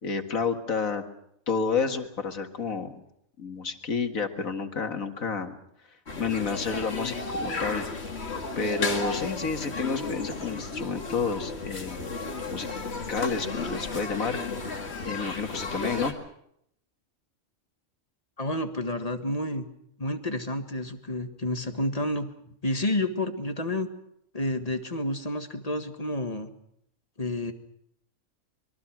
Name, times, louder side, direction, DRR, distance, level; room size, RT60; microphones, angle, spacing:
voice 1, 0.0-1.0 1.5-3.0 3.4-5.6 6.2-7.9 8.6-12.1 12.5-12.7 13.1-14.4 15.0-16.1, left 5 dB, 85° left, 6 dB, 2.3 m, -30 dB
sound 1, 6.1-16.1, left 3 dB, 50° left, 2.4 m, -33 dB
voice 2, 18.4-19.7 20.0-22.3 22.6-23.9 24.3-26.5 27.2-27.5, left 1 dB, 30° left, 7 dB, 1.7 m, -30 dB
25.0 x 22.5 x 6.1 m, 0.73 s
omnidirectional pair, 1.4 m